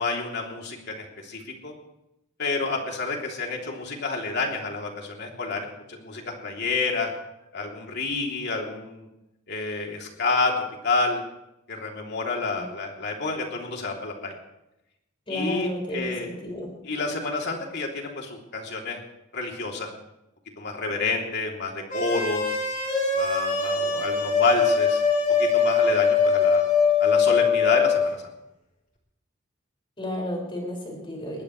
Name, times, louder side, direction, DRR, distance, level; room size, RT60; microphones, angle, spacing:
voice 1, 0.0-1.7 2.4-7.1 7.5-9.1 9.5-10.5 10.8-11.2 11.7-14.3 15.3-16.3 16.8-19.0 19.3-19.9 20.6-22.6 23.1-25.0 25.4-26.6 27.0-28.3, left 3 dB, 55° left, 1 dB, 3.1 m, -29 dB
voice 2, 15.3-16.7 30.0-31.4, left 1 dB, 25° left, -1 dB, 5.6 m, -32 dB
sound 1, 21.9-28.1, left 5 dB, 40° left, 3.5 m, -22 dB
21.5 x 18.5 x 3.2 m, 0.88 s
head